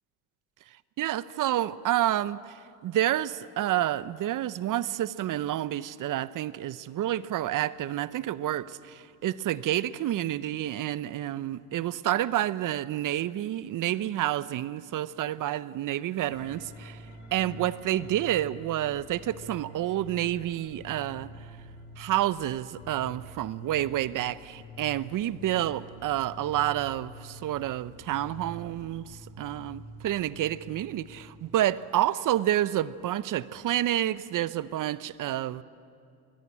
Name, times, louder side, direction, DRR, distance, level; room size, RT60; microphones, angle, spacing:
voice 1, 1.0-17.0 17.3-21.3 22.0-35.6, right 13 dB, 45° right, 0.8 m, -29 dB
sound 1, 16.2-31.5, equal, 85° left, 6.9 m, -47 dB
22.0 x 17.5 x 8.6 m
supercardioid pair, 80°, 43 cm